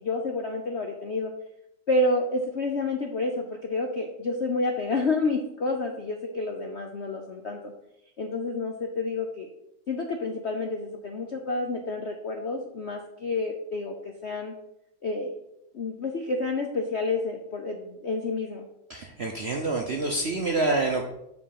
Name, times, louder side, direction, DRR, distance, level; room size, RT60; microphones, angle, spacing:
voice 1, 0.0-1.3 1.9-7.7 8.2-9.5 9.9-14.5 15.0-15.4 15.7-18.7, left 2 dB, 65° left, 3 dB, 0.7 m, -29 dB
voice 2, 18.9-21.0, right 2 dB, 60° right, 1 dB, 0.7 m, -27 dB
7.4 x 4.7 x 5.8 m, 0.82 s
omnidirectional pair, 2.1 m